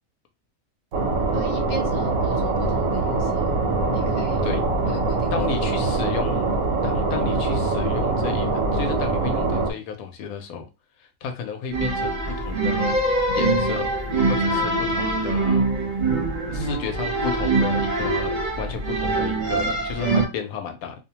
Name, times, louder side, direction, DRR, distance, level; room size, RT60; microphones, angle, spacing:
sound 1, 0.9-9.7, right 3 dB, 80° right, 1.1 m, -23 dB
voice 1, 1.3-3.4 3.9-4.4 4.8-5.4, left 1 dB, 40° left, 0.6 m, -37 dB
voice 2, 5.3-6.5 6.8-10.7 11.2-13.0 13.3-13.9 14.2-15.7 16.5-20.9, left 7 dB, 85° left, 1.0 m, -32 dB
sound 2, 11.7-20.3, right 2 dB, 45° right, 0.7 m, -23 dB
2.6 x 2.1 x 2.8 m
omnidirectional pair, 1.5 m